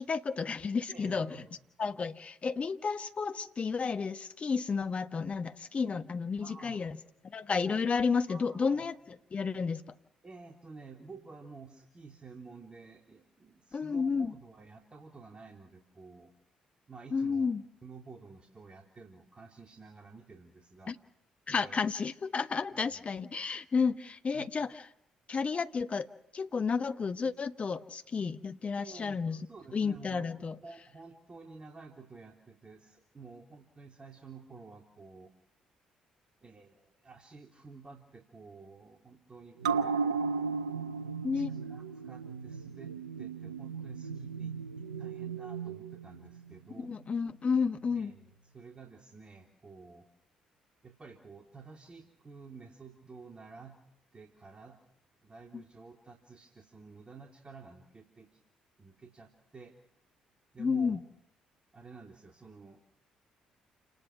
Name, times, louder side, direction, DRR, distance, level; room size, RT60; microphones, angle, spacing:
voice 1, 0.0-1.4 1.8-7.0 7.2-9.8 13.7-14.3 17.1-17.6 20.9-21.0 21.5-24.7 25.3-26.1 26.3-29.4 29.7-30.6 41.2-41.5 46.8-48.1 55.5-55.6 60.6-61.0, left 5 dB, 40° left, 10 dB, 1.4 m, -32 dB
voice 2, 0.9-1.5 6.4-6.8 8.3-8.9 10.2-16.3 16.9-17.5 17.8-20.9 21.5-21.8 22.7-23.0 24.3-24.5 28.8-35.3 36.4-39.9 41.3-46.9 47.9-50.1 50.8-53.8 54.1-54.8 55.2-58.3 58.8-59.7 60.5-61.0 61.7-62.8, right 4 dB, 30° right, 2 dB, 3.4 m, -51 dB
sound 1, 39.6-46.5 46.9-47.0, right 5 dB, 85° right, 0.8 m, -35 dB
29.0 x 19.5 x 6.1 m, 0.77 s
figure-of-eight pair, 45°, 3 cm